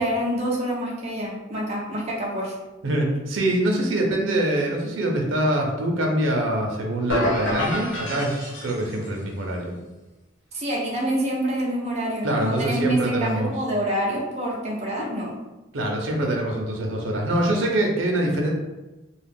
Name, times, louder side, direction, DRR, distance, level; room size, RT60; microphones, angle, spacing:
voice 1, 0.0-2.5 10.5-15.3, right 1 dB, 35° right, -4 dB, 0.6 m, -26 dB
voice 2, 2.8-9.7 12.2-13.5 15.7-18.5, right 1 dB, 85° right, 1 dB, 0.6 m, -24 dB
sound 1, 7.1-9.2, left 1 dB, 75° left, 0.6 m, -28 dB
2.3 x 2.1 x 3.4 m, 1.1 s
head